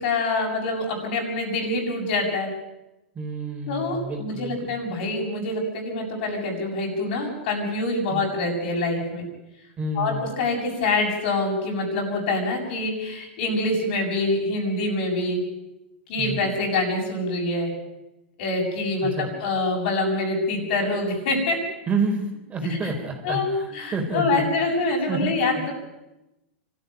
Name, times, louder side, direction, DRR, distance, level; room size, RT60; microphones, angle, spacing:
voice 1, 0.0-2.5 3.7-9.3 10.0-15.4 16.1-17.7 18.4-21.6 22.7-22.9 23.2-25.7, left 2 dB, 60° left, 2 dB, 7.4 m, -25 dB
voice 2, 3.1-4.7 8.1-8.2 9.8-10.3 16.2-16.4 19.0-19.3 21.9-24.5 25.1-25.4, right 3 dB, 20° right, 2 dB, 4.3 m, -29 dB
24.5 x 13.5 x 9.2 m, 0.95 s
hypercardioid pair, 110°, 6 cm